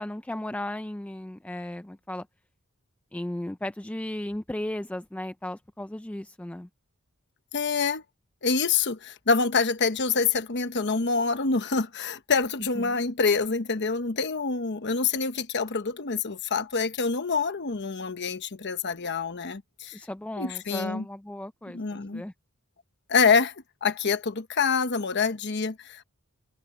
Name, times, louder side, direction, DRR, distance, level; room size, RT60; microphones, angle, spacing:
voice 1, 0.0-2.3 3.1-6.7 12.8-13.0 19.9-22.3, left 1 dB, 5° left, 0.4 m, -35 dB
voice 2, 7.5-8.0 8.4-20.0 20.4-21.0 21.7-22.2 23.1-23.5 23.8-26.0, left 5 dB, 55° left, 1.1 m, -26 dB
head